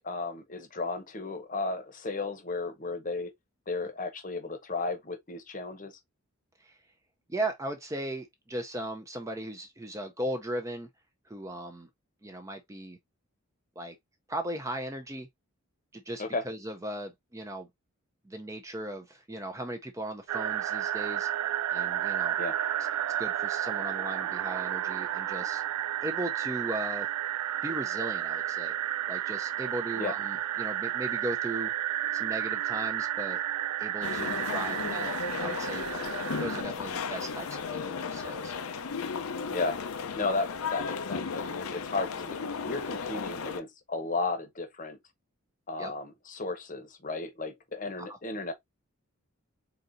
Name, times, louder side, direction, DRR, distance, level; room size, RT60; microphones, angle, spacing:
voice 1, 0.0-3.3 3.7-5.9 16.2-16.4 22.4-22.6 30.0-30.1 39.5-39.8 40.2-42.4 42.6-45.0 45.7-48.5, left 3 dB, 35° left, 0.9 m, -34 dB
voice 2, 7.3-10.9 11.3-11.9 12.2-13.0 13.8-14.0 14.3-15.3 15.9-17.7 18.2-21.3 21.7-22.4 23.2-25.6 26.0-27.1 27.6-28.7 29.1-31.7 32.1-33.4 33.8-35.1 35.4-35.9 36.4-38.5 45.8-45.9 48.0-48.2, right 1 dB, 15° right, 0.5 m, -37 dB
sound 1, 20.3-36.6, right 11 dB, 90° right, 0.3 m, -32 dB
sound 2, 34.0-43.6, left 5 dB, 75° left, 0.6 m, -35 dB
4.0 x 3.9 x 2.6 m
head